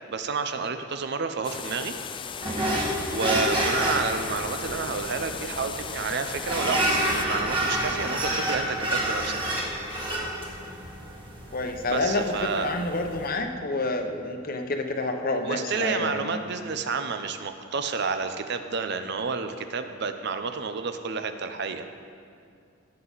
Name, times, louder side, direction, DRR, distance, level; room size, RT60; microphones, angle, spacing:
voice 1, 0.1-1.9 3.1-9.4 11.9-12.7 15.4-21.9, right 5 dB, 55° right, 8 dB, 0.7 m, -30 dB
sound 1, 1.4-7.3, left 6 dB, 25° left, 0.4 m, -37 dB
sound 2, 2.4-13.3, right 1 dB, 25° right, 1.9 m, -29 dB
voice 2, 11.5-16.4, left 2 dB, 45° left, 5 dB, 0.9 m, -28 dB
17.0 x 7.7 x 4.1 m, 2.3 s
head